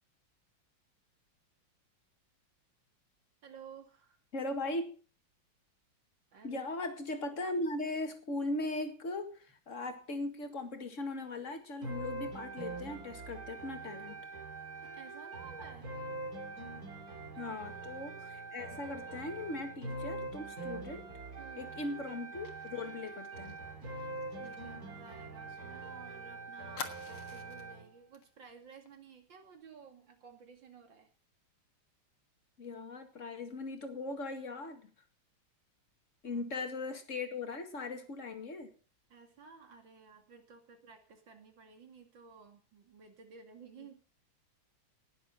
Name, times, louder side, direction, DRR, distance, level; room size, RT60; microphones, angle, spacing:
voice 1, 3.4-4.2 6.3-6.7 14.7-16.0 16.9-17.2 17.4-17.5 21.4-21.7 23.8-31.1 36.2-36.4 39.1-44.0, right 5 dB, 65° right, 5 dB, 2.9 m, -55 dB
voice 2, 4.3-5.0 6.4-14.2 17.4-21.1 21.6-23.6 32.6-34.9 36.2-38.7, left 2 dB, 40° left, 7 dB, 2.1 m, -39 dB
sound 1, 11.8-27.8, right 2 dB, 45° right, 3.5 m, -43 dB
Fire, 22.4-25.9 26.1-26.2 26.7-27.7 28.1-28.3 28.6-28.9, left 5 dB, 65° left, 2.3 m, -48 dB
18.0 x 7.6 x 5.6 m, 0.38 s
omnidirectional pair, 2.2 m